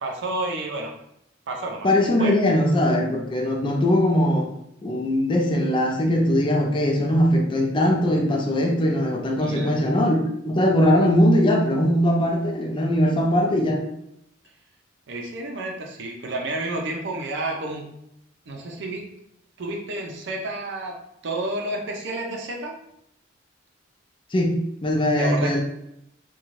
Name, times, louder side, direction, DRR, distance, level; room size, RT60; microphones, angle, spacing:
voice 1, 0.0-0.9 1.5-2.3 9.4-9.8 15.1-17.8 18.5-19.0 19.6-21.0 21.2-22.8 25.2-25.5, right 2 dB, 65° right, 1 dB, 0.5 m, -30 dB
voice 2, 1.8-4.5 4.8-13.8 24.3-25.6, left 1 dB, 25° left, 1 dB, 0.5 m, -20 dB
2.5 x 2.2 x 3.0 m, 0.78 s
head